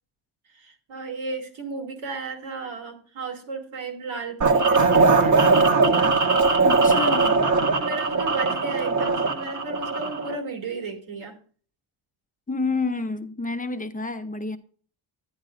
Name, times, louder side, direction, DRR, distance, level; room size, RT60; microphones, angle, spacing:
voice 1, 0.5-5.4 7.6-11.4, right 4 dB, 75° right, 2.5 m, -34 dB
sound 1, 4.4-10.4, right 4 dB, 40° right, 1.3 m, -20 dB
voice 2, 6.6-7.4 12.5-14.6, left 3 dB, 15° left, 0.8 m, -29 dB
10.5 x 10.5 x 2.5 m
wide cardioid pair, 135°, 47 cm